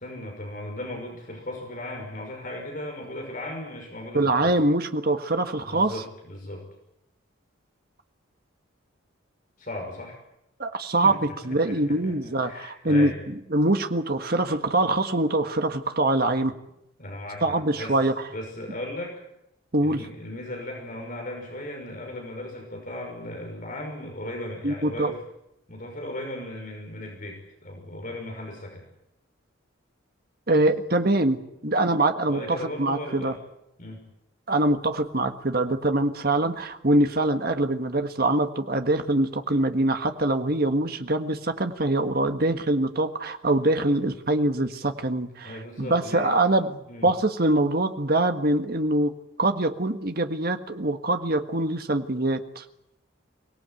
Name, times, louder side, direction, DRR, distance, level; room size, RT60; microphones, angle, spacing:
voice 1, 0.0-4.5 5.6-6.7 9.6-10.2 10.7-13.2 17.0-18.0 18.3-19.2 19.8-25.2 25.7-28.8 32.3-33.4 33.8-34.0 45.4-46.3 46.9-47.1, left 1 dB, 40° left, 2 dB, 5.9 m, -37 dB
voice 2, 4.1-5.9 10.6-11.2 11.4-16.5 17.4-18.1 19.7-20.0 24.6-25.1 30.5-33.3 34.5-49.1 49.4-52.6, right 2 dB, 50° right, 7 dB, 1.6 m, -24 dB
24.0 x 18.5 x 9.2 m, 0.84 s
head